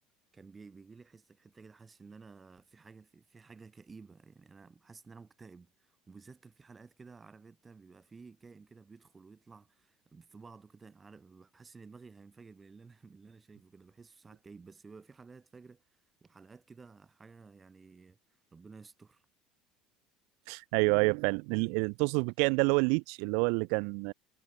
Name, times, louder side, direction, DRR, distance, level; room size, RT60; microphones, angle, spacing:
voice 1, 0.3-15.8 16.2-18.2 18.5-19.2, right 4 dB, 15° right, 2.2 m, -54 dB
voice 2, 20.5-24.1, right 38 dB, 80° right, 0.5 m, -28 dB
cardioid pair, 145°, 0 cm